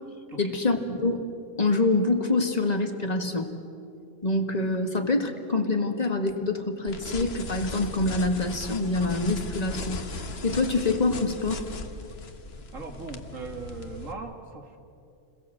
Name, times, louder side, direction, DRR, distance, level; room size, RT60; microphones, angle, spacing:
voice 1, 0.4-1.2 1.6-3.5 4.2-10.1 10.4-11.6, left 2 dB, 30° left, 4 dB, 2.0 m, -26 dB
sound 1, 6.9-14.1, left 3 dB, 55° left, 1.5 m, -38 dB
voice 2, 12.7-14.8, right 3 dB, 85° right, 3 dB, 2.7 m, -39 dB
29.0 x 21.5 x 7.8 m, 2.6 s
omnidirectional pair, 1.3 m